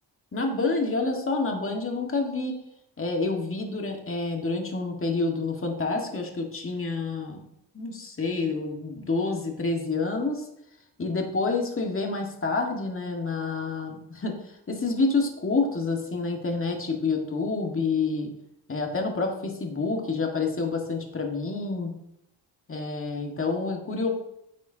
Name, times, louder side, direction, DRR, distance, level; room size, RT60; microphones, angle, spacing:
voice 1, 0.3-2.5 3.0-7.4 7.7-10.4 11.0-14.3 14.7-18.3 18.7-21.9 22.7-24.1, left 3 dB, 30° left, 1 dB, 1.8 m, -28 dB
9.7 x 6.2 x 2.9 m, 0.79 s
cardioid pair, 85°, 43 cm